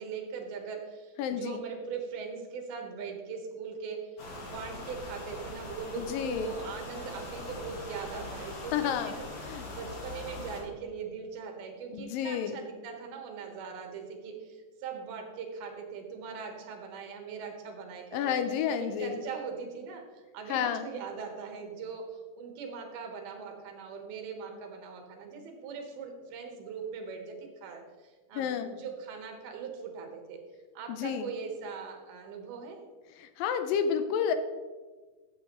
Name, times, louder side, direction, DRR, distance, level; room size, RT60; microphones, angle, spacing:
voice 1, 0.0-9.3 9.7-18.4 18.8-27.4 27.6-27.8 28.3-30.4 30.7-32.8, right 5 dB, 85° right, 3 dB, 3.2 m, -40 dB
voice 2, 1.2-1.6 6.0-6.6 8.7-9.7 11.9-12.6 18.1-19.2 20.5-20.9 28.3-28.7 30.9-31.3 33.2-34.3, left 8 dB, 80° left, 9 dB, 2.2 m, -31 dB
sound 1, 4.2-10.6, left 2 dB, 55° left, 2.9 m, -42 dB
14.5 x 7.4 x 3.0 m, 1.4 s
omnidirectional pair, 4.2 m